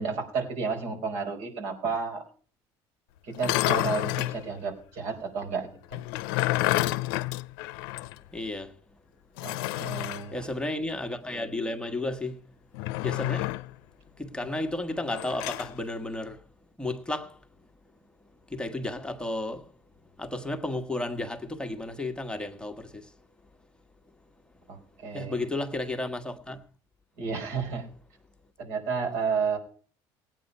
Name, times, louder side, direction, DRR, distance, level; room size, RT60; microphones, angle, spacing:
voice 1, 0.0-2.2 3.3-6.0 9.4-10.5 24.7-25.4 27.2-27.9 28.6-29.6, right 5 dB, 75° right, 4.9 m, -32 dB
sound 1, 3.3-4.4 5.9-8.2 8.5-8.6 9.4-10.3 12.7-13.7 15.1-15.7, left 18 dB, 85° left, 0.5 m, -29 dB
voice 2, 8.3-8.7 10.3-12.4 13.0-13.5 14.2-16.4 16.8-17.4 18.5-19.7 20.2-23.1 25.1-26.6, left 2 dB, 10° left, 1.4 m, -33 dB
18.0 x 9.1 x 5.4 m
supercardioid pair, 90°, 11 cm